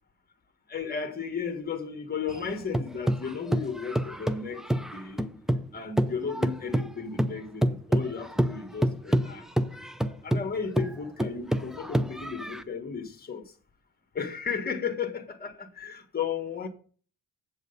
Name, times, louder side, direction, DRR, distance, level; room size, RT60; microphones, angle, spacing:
voice 1, 0.7-5.3 5.7-9.5 10.0-13.5 14.1-16.7, left 6 dB, 25° left, 1.5 m, -34 dB
sound 1, 2.3-5.7 6.0-12.6, right 1 dB, ahead, 0.4 m, -28 dB
7.9 x 7.8 x 5.3 m
cardioid pair, 150°, 37 cm